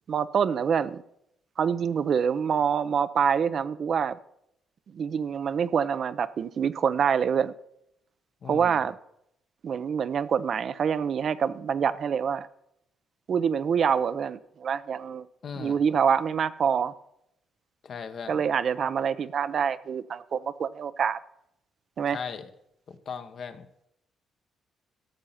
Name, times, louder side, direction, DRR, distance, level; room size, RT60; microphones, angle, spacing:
voice 1, 0.1-1.0 1.6-4.2 4.9-7.5 8.5-9.0 9.6-12.5 13.3-15.3 15.6-16.9 18.3-21.2 22.0-22.2, right 7 dB, 55° right, 14 dB, 0.5 m, -26 dB
voice 2, 8.4-8.8 15.4-15.8 17.8-18.4 22.1-22.5 22.9-23.7, left 6 dB, 55° left, 9 dB, 1.0 m, -38 dB
13.0 x 6.5 x 5.7 m, 0.77 s
cardioid pair, 90°, 0 cm